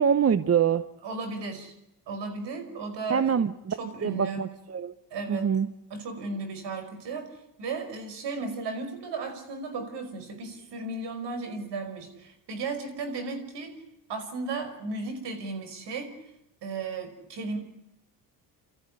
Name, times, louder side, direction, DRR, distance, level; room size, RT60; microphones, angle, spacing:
voice 1, 0.0-0.8 3.1-4.9 5.3-5.7, right 7 dB, 35° right, 14 dB, 0.9 m, -25 dB
voice 2, 1.0-1.7 2.1-3.4 3.8-4.5 5.1-5.6 5.9-7.3 7.6-13.8 14.1-16.1 16.6-17.6, right 3 dB, 70° right, 8 dB, 5.3 m, -35 dB
29.0 x 14.0 x 10.0 m, 0.82 s
cardioid pair, 85°, 43 cm